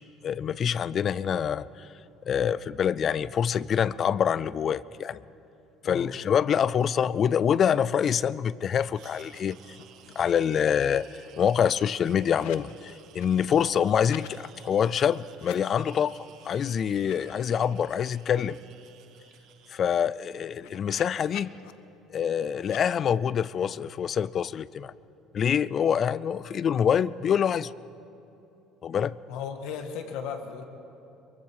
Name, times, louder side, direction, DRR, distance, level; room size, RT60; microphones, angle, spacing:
voice 1, 0.2-1.9 2.3-5.2 5.8-9.6 10.2-18.6 19.7-21.5 22.1-24.9 25.3-27.7 28.8-29.1, left 8 dB, 30° left, 19 dB, 0.4 m, -26 dB
sound 1, 8.9-19.8, right 9 dB, 50° right, 1.3 m, -54 dB
sound 2, 9.2-9.4 9.6-10.3 10.7-12.7 13.0-14.4 15.3-16.0 16.4-16.6 16.9-18.3 18.7-18.8 19.0-21.7 22.6-22.8, left 14 dB, 85° left, 0.7 m, -49 dB
voice 2, 29.3-30.6, left 7 dB, 70° left, 4 dB, 2.0 m, -35 dB
23.0 x 23.0 x 4.8 m, 2.9 s
cardioid pair, 165°, 0 cm